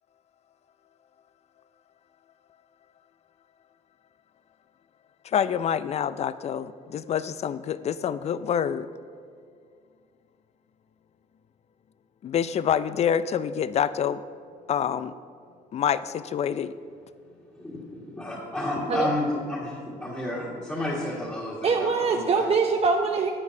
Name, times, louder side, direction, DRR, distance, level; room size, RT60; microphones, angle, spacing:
voice 1, 5.2-8.9 12.2-14.2 14.7-15.1 15.7-16.7, left 8 dB, 40° left, 15 dB, 0.4 m, -26 dB
voice 2, 17.5-22.5, left 1 dB, 15° left, -8 dB, 1.8 m, -31 dB
voice 3, 21.6-23.3, right 4 dB, 35° right, 3 dB, 0.6 m, -23 dB
11.0 x 8.4 x 2.7 m, 2.2 s
supercardioid pair, 85°, 17 cm